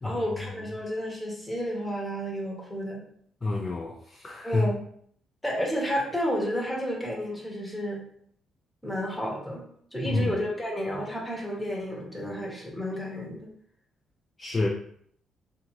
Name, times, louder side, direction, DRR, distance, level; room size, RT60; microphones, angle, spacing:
voice 1, 0.0-3.0 4.4-4.8 5.4-8.0 8.8-9.6 9.9-13.5, equal, 10° left, -2 dB, 1.0 m, -31 dB
voice 2, 3.4-4.6 10.0-10.3 14.4-14.7, left 2 dB, 30° left, -2 dB, 0.4 m, -28 dB
2.5 x 2.5 x 3.0 m, 0.63 s
cardioid pair, 90°, 0 cm